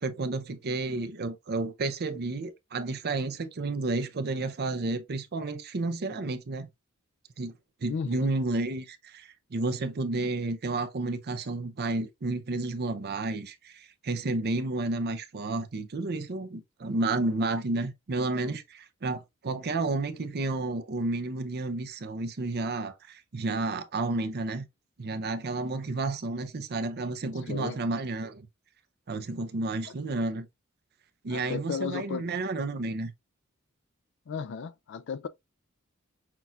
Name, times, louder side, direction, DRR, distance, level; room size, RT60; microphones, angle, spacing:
voice 1, 0.0-6.7 7.4-7.5 7.8-24.7 25.0-28.5 29.1-30.5 31.2-33.1, right 2 dB, 50° right, 0.6 m, -31 dB
voice 2, 7.9-8.3 27.5-27.8 31.3-32.3 34.3-35.3, left 6 dB, 55° left, 0.4 m, -34 dB
5.9 x 2.4 x 2.6 m
head